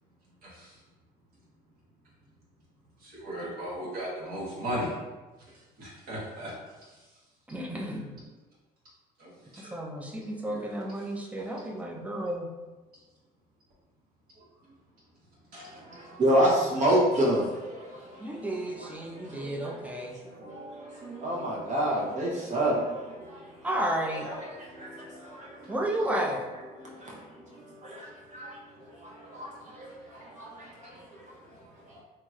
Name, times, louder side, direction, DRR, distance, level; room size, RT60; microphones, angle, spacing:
voice 1, 0.4-0.8 3.0-5.0 5.5-7.2 7.8-7.9 9.2-9.7 10.2-11.1 14.3-14.8 15.2-16.0 28.7-28.8 29.3-29.4, equal, 60° right, 1.2 m, -38 dB
voice 2, 7.5-8.2 9.6-12.5 18.2-20.2 23.6-24.3 25.7-26.5, right 1 dB, 10° right, 0.5 m, -32 dB
voice 3, 15.5-18.5 18.7-23.7 24.1-25.8 26.7-32.0, right 1 dB, 45° right, 0.9 m, -30 dB
3.0 x 2.8 x 2.4 m
cardioid pair, 110°, 17 cm